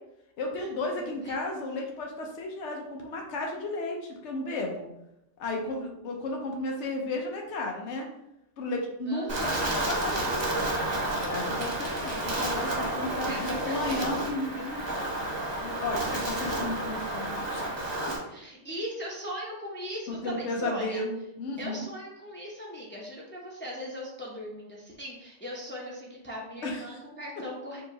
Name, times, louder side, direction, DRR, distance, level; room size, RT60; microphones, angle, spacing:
voice 1, 0.4-4.9 5.4-8.1 8.6-10.8 11.2-14.8 15.6-17.6 18.0-18.1 20.1-21.8 26.6-27.0, left 2 dB, 75° left, 0 dB, 1.0 m, -34 dB
voice 2, 0.9-1.3 9.1-9.6 13.2-14.0 18.3-21.0 21.6-27.8, equal, 10° left, -4 dB, 0.6 m, -39 dB
Wind, 9.3-18.2, right 1 dB, 40° right, 1.0 m, -31 dB
4.8 x 2.8 x 2.8 m, 0.84 s
omnidirectional pair, 1.2 m